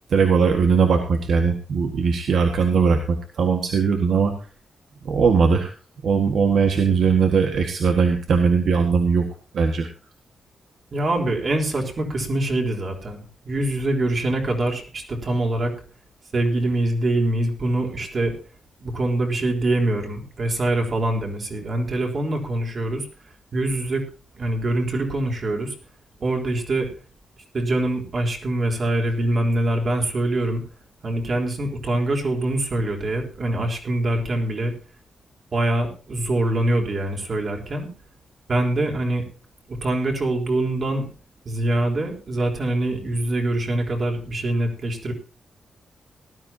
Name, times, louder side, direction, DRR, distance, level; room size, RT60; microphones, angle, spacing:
voice 1, 0.1-4.3 5.0-5.7 6.0-9.3 9.5-9.9, right 5 dB, 70° right, 4 dB, 1.7 m, -19 dB
voice 2, 10.9-15.7 16.3-18.3 18.8-23.1 23.5-24.0 24.4-25.8 26.2-26.9 27.5-30.6 31.0-34.7 35.5-37.9 38.5-39.2 39.7-41.1 41.4-45.1, right 1 dB, 45° right, 2 dB, 3.8 m, -24 dB
18.5 x 13.0 x 2.9 m, 0.36 s
cardioid pair, 120°, 0 cm